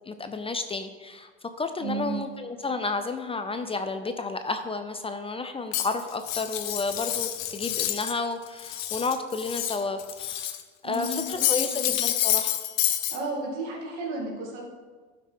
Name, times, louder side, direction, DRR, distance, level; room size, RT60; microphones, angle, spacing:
voice 1, 0.1-1.3 1.6-10.6 10.8-12.6, left 3 dB, 20° left, 7 dB, 0.6 m, -31 dB
voice 2, 1.8-2.3 10.8-11.2 11.5-11.9 13.1-14.7, right 3 dB, 80° right, -3 dB, 2.8 m, -33 dB
Cutlery silverware, 5.7-8.2 8.5-10.6 10.9-13.2, left 12 dB, 55° left, 0.9 m, -28 dB
12.0 x 5.9 x 3.7 m, 1.4 s
supercardioid pair, 105°, 32 cm